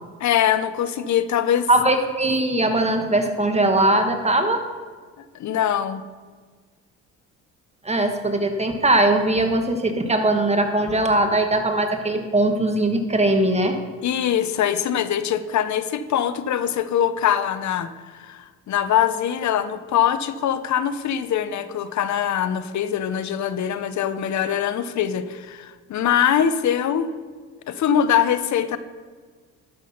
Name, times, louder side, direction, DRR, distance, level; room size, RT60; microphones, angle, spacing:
voice 1, 0.2-1.7 5.3-6.0 14.0-27.1 27.7-28.8, left 9 dB, 55° left, 12 dB, 0.8 m, -23 dB
voice 2, 1.7-4.7 7.8-13.8, right 1 dB, 20° right, 5 dB, 1.4 m, -20 dB
12.0 x 6.2 x 5.6 m, 1.5 s
supercardioid pair, 75°, 34 cm